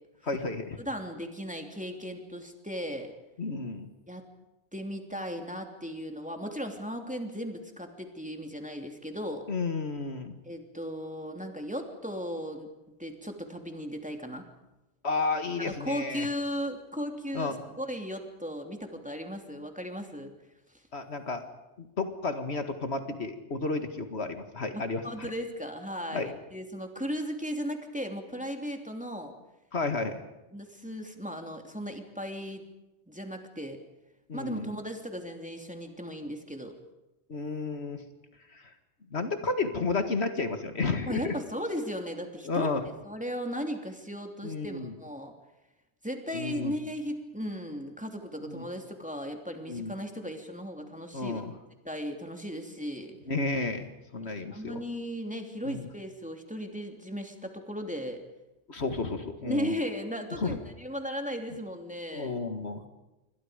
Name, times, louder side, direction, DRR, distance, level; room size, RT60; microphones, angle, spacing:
voice 1, 0.2-0.8 3.4-3.9 9.5-10.4 15.0-16.3 17.3-17.6 20.9-21.4 21.8-25.3 26.1-26.3 29.7-30.2 34.3-34.7 37.3-38.0 38.5-38.7 39.1-41.3 42.4-42.8 44.4-44.9 46.3-46.7 48.5-48.6 49.7-49.9 51.1-51.5 53.3-53.9 54.1-54.8 55.6-55.9 58.7-59.7 60.4-60.6 62.1-62.9, left 3 dB, 70° left, 7 dB, 2.2 m, -32 dB
voice 2, 0.8-3.1 4.1-4.2 4.7-9.5 10.4-12.7 13.0-14.4 15.6-20.3 24.7-29.3 30.5-32.6 33.1-33.8 34.3-36.7 41.0-42.7 43.0-45.3 46.0-51.4 51.8-53.2 54.2-58.2 59.4-62.3, equal, 5° right, 4 dB, 2.9 m, -36 dB
28.0 x 24.5 x 5.1 m, 0.99 s
omnidirectional pair, 1.2 m